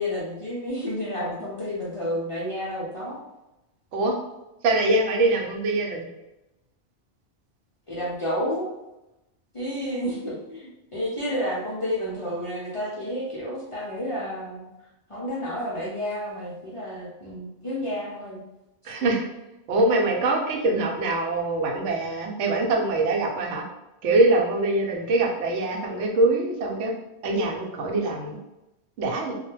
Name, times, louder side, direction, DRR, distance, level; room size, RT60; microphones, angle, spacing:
voice 1, 0.0-3.2 7.9-8.7 9.5-14.7 15.1-18.4, equal, 45° left, -7 dB, 0.4 m, -30 dB
voice 2, 4.6-6.0 18.8-19.2 19.7-23.6 24.0-26.9 27.2-28.4 29.0-29.3, right 2 dB, 85° right, 1 dB, 0.9 m, -23 dB
2.2 x 2.1 x 3.0 m, 0.95 s
omnidirectional pair, 1.2 m